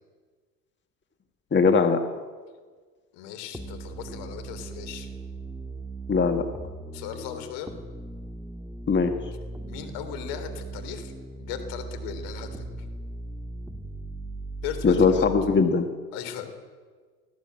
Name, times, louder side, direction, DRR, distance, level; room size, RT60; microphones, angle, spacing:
voice 1, 1.5-2.0 6.1-6.5 8.9-9.1 14.8-15.9, left 5 dB, 25° left, 6 dB, 1.8 m, -20 dB
voice 2, 3.1-5.1 6.9-7.7 9.7-11.1 11.4-12.9 14.6-15.3 16.1-16.6, left 9 dB, 65° left, 7 dB, 3.7 m, -37 dB
sound 1, 3.5-15.6, right 2 dB, 5° right, 1.7 m, -38 dB
19.5 x 15.0 x 8.9 m, 1.5 s
hypercardioid pair, 70°, 44 cm